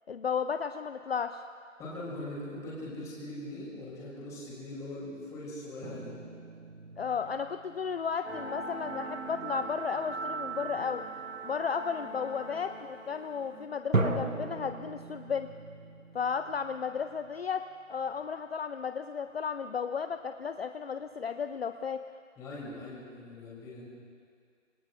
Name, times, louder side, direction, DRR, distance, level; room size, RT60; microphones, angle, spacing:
voice 1, 0.1-1.4 7.0-11.1 11.4-15.5 16.1-22.1, left 6 dB, 50° left, 9 dB, 0.5 m, -34 dB
voice 2, 1.8-6.1 22.4-23.9, left 1 dB, 10° left, -5 dB, 2.9 m, -41 dB
sound 1, 5.8-8.8 9.3-9.7 13.9-18.3, right 2 dB, 90° right, 1.4 m, -37 dB
sound 2, 8.2-13.7, right 3 dB, 55° right, 1.7 m, -40 dB
26.5 x 21.5 x 2.5 m, 2.2 s
figure-of-eight pair, 155°, 39 cm